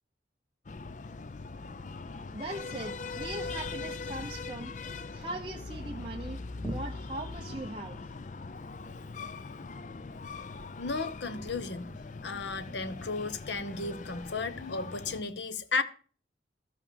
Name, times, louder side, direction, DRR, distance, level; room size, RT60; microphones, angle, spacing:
Breathing, 0.6-15.2, left 4 dB, 40° left, 0.5 m, -41 dB
sound 1, 0.9-14.4, equal, 15° left, 2.0 m, -52 dB
voice 1, 2.3-4.7 5.1-6.4 6.6-8.0, right 2 dB, 25° right, 0.9 m, -40 dB
voice 2, 10.8-11.9 12.2-15.8, left 4 dB, 75° left, 1.0 m, -34 dB
12.5 x 5.7 x 6.9 m
head